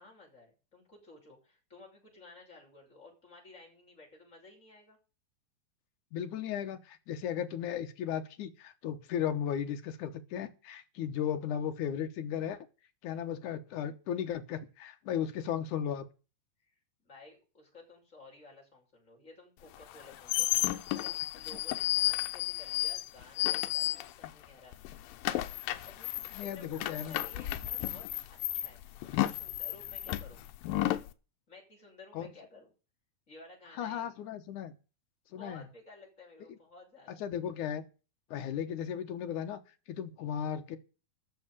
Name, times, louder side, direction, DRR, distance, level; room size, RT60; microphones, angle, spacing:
voice 1, 0.0-5.0 15.3-15.4 16.6-16.7 17.0-24.7 25.8-30.4 31.5-32.7 33.3-34.1 35.3-37.2, left 2 dB, 20° left, 6.4 m, -55 dB
voice 2, 6.1-12.6 13.0-16.0 26.4-27.2 32.1-32.3 33.8-34.7 35.3-35.6 37.1-37.8 38.3-39.6 39.9-40.8, left 9 dB, 70° left, 2.4 m, -35 dB
sound 1, 19.8-24.5 24.7-31.1, left 15 dB, 85° left, 2.5 m, -33 dB
13.5 x 7.0 x 8.4 m
omnidirectional pair, 4.0 m